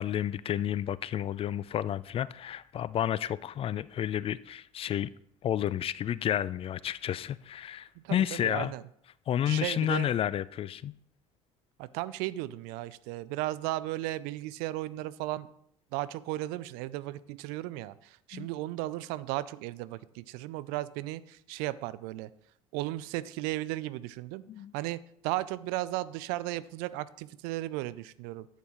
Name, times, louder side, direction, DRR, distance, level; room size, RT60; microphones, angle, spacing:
voice 1, 0.0-5.1 5.4-8.7 9.3-10.9 18.3-18.5 24.5-24.7, left 10 dB, 35° left, 0.4 m, -31 dB
voice 2, 8.0-8.8 9.5-10.1 11.8-15.5 15.9-22.3 22.7-24.4 24.7-28.5, right 16 dB, 60° right, 0.5 m, -35 dB
11.0 x 8.3 x 3.0 m
hypercardioid pair, 65°, 17 cm